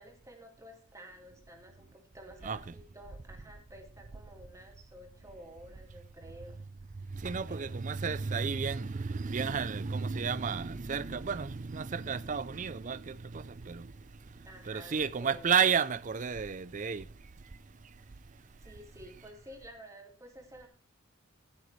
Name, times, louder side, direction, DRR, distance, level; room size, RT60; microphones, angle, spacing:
voice 1, 0.0-6.6 7.4-7.7 14.4-15.5 18.6-20.7, equal, 15° right, 2.2 m, -51 dB
voice 2, 7.2-13.9 14.7-17.0, right 6 dB, 35° right, 0.5 m, -32 dB
15.5 x 8.9 x 3.2 m
head